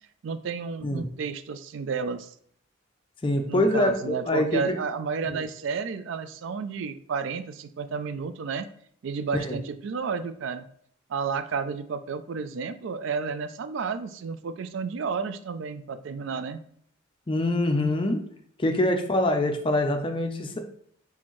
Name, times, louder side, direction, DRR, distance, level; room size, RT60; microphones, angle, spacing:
voice 1, 0.2-2.3 3.5-8.7 9.0-10.7 11.1-16.6, right 5 dB, 60° right, 11 dB, 0.3 m, -31 dB
voice 2, 3.2-4.6 5.3-5.4 9.4-9.5 17.3-18.2 18.6-20.6, left 1 dB, 25° left, 5 dB, 0.4 m, -24 dB
4.3 x 3.5 x 3.0 m, 0.63 s
head